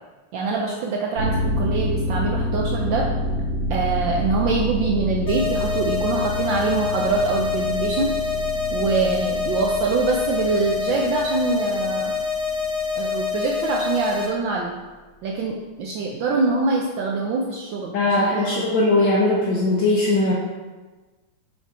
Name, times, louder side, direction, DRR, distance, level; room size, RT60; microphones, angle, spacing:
voice 1, 0.3-3.0 3.7-8.1 8.7-12.2 13.0-14.7 15.2-18.7, right 4 dB, 70° right, -1 dB, 1.3 m, -24 dB
sound 1, 1.2-13.3 13.6-13.7, equal, 50° right, 1.1 m, -28 dB
sound 2, 5.3-14.3, left 5 dB, 85° left, 2.2 m, -26 dB
voice 2, 17.9-20.3, left 2 dB, 65° left, -3 dB, 1.5 m, -19 dB
6.4 x 5.1 x 4.3 m, 1.2 s
omnidirectional pair, 2.3 m